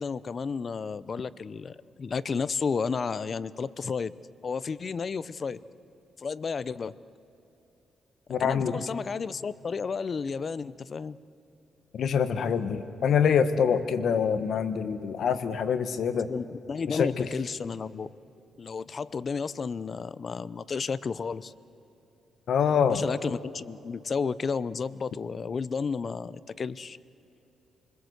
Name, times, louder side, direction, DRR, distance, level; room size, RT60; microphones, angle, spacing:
voice 1, 0.0-4.1 4.4-5.6 6.2-6.9 8.4-11.2 16.3-18.1 18.6-21.5 22.9-27.0, left 5 dB, 40° left, 18 dB, 0.6 m, -32 dB
voice 2, 8.3-8.8 11.9-16.3 16.9-17.3 22.5-23.1, left 7 dB, 65° left, 11 dB, 1.4 m, -25 dB
28.5 x 21.0 x 8.0 m, 3.0 s
cardioid pair, 105°, 0 cm